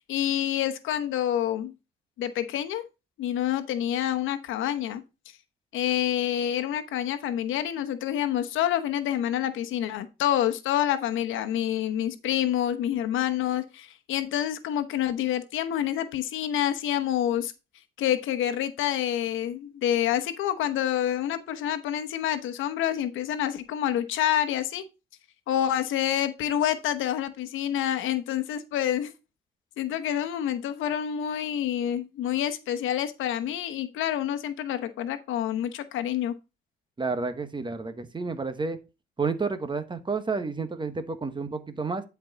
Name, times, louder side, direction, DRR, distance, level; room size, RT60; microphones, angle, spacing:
voice 1, 0.0-1.7 2.2-2.8 3.2-5.0 5.7-17.5 18.0-24.8 25.5-29.1 29.8-36.3, left 11 dB, 85° left, 1.0 m, -27 dB
voice 2, 37.0-38.8 39.2-42.0, right 4 dB, 25° right, 1.2 m, -30 dB
10.5 x 4.6 x 4.0 m
cardioid pair, 90°, 20 cm